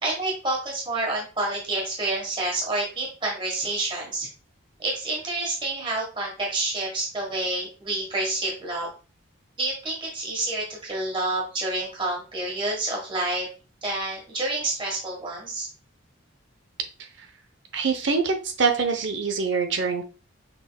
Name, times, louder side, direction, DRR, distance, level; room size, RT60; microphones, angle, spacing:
voice 1, 0.0-4.3 4.8-8.9 9.6-13.5 13.8-15.7, right 2 dB, 25° right, -2 dB, 1.3 m, -28 dB
voice 2, 17.7-20.0, right 5 dB, 55° right, 6 dB, 0.7 m, -24 dB
6.0 x 3.4 x 2.3 m, 0.33 s
head